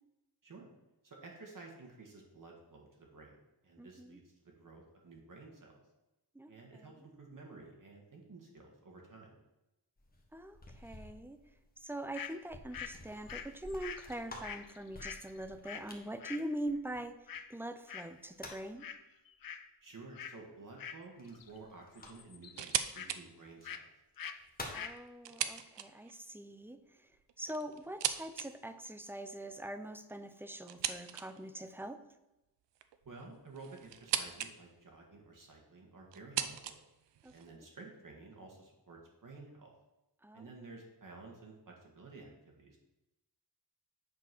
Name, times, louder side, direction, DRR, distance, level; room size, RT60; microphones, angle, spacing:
voice 1, 1.0-4.2 4.6-5.8 6.5-9.3 19.8-23.8 33.1-36.8 37.3-39.7 40.3-42.8, right 3 dB, 50° right, 0 dB, 1.8 m, -52 dB
voice 2, 3.8-4.2 6.3-7.1 10.3-11.4 11.8-18.9 24.7-32.0 37.2-37.6 40.2-40.5, right 1 dB, 5° right, 9 dB, 0.5 m, -43 dB
sound 1, 10.0-17.4 18.0-18.8 21.2-22.5 23.5-23.6 24.1-25.0, left 1 dB, 20° left, 1.4 m, -51 dB
sound 2, 12.1-12.3 12.7-15.9 16.2-16.5 17.3-17.5 17.9-18.2 18.5-19.0 19.3-19.7 20.1-20.4 20.8-21.6 21.8-23.1 23.6-23.9 24.2-24.4 24.6-25.0, left 8 dB, 55° left, 0.6 m, -45 dB
sound 3, 22.5-23.2 23.6-23.7 24.5-26.2 27.1-28.5 30.7-31.5 32.7-34.5 34.8-35.4 36.1-37.5, right 10 dB, 80° right, 0.6 m, -38 dB
8.2 x 4.5 x 5.9 m, 0.96 s
wide cardioid pair, 115°, 42 cm